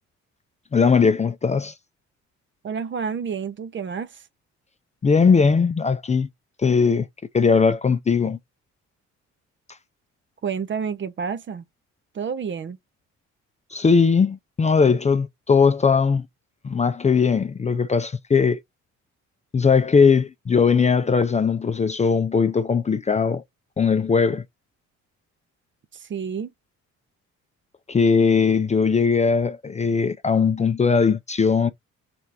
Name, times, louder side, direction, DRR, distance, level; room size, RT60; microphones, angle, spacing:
voice 1, 0.7-1.7 5.0-6.3 6.6-7.1 7.3-8.4 13.7-16.3 16.6-18.6 19.5-23.4 23.8-24.4 27.9-31.7, left 5 dB, 25° left, 0.4 m, -19 dB
voice 2, 2.6-4.2 10.4-11.6 12.1-12.8 25.9-26.5, right 6 dB, 40° right, 0.6 m, -29 dB
4.4 x 3.4 x 2.6 m
cardioid pair, 90°, 30 cm